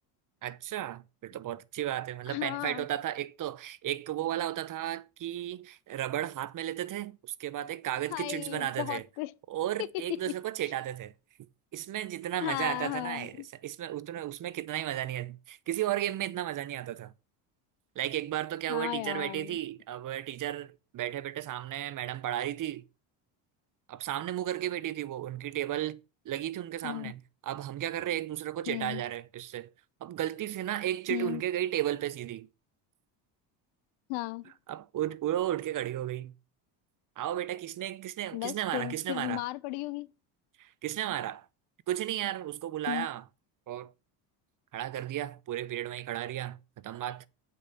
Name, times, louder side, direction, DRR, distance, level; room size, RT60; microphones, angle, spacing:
voice 1, 0.4-9.0 9.5-11.1 11.7-17.1 18.0-22.8 23.9-29.7 30.0-32.5 34.7-36.3 37.2-39.4 40.6-41.5 41.9-43.2 43.7-43.9 44.7-47.3, right 12 dB, 40° right, 0.6 m, -34 dB
voice 2, 2.3-2.9 8.1-9.3 12.4-13.5 18.7-19.6 26.8-27.1 28.7-29.0 31.1-31.4 34.1-34.5 38.3-40.1 42.9-43.1, left 20 dB, 80° left, 0.7 m, -35 dB
8.5 x 5.4 x 6.7 m
supercardioid pair, 95°, 50 cm